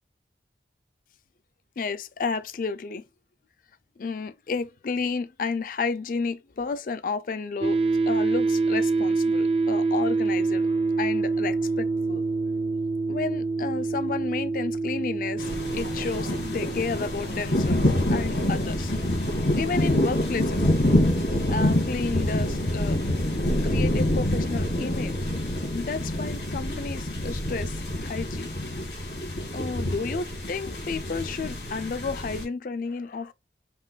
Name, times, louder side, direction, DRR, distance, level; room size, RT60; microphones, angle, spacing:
voice 1, 1.8-3.0 4.0-7.8 8.1-12.2 13.1-17.8 18.1-18.9 19.6-20.6 21.5-23.0 23.6-25.2 25.7-28.5 29.5-33.3, left 4 dB, 50° left, 0.4 m, -32 dB
sound 1, 7.6-22.8, right 3 dB, 35° right, 0.4 m, -28 dB
sound 2, 15.4-32.5, left 1 dB, 90° left, 2.3 m, -26 dB
5.3 x 2.2 x 2.4 m
head